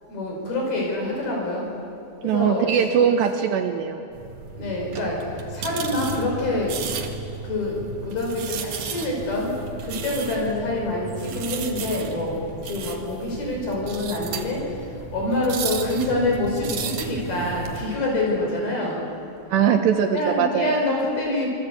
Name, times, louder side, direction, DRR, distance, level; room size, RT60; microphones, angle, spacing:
voice 1, 0.1-1.7 2.2-2.7 4.6-5.2 5.5-6.8 7.4-9.5 9.8-12.3 12.6-14.6 15.1-19.0 20.1-21.5, left 2 dB, 50° left, -1 dB, 7.2 m, -26 dB
voice 2, 2.2-4.1 19.5-20.8, right 8 dB, 75° right, 5 dB, 2.9 m, -21 dB
sound 1, 4.1-17.8, right 5 dB, 55° right, 2.3 m, -34 dB
26.0 x 22.0 x 8.4 m, 2.7 s
omnidirectional pair, 5.6 m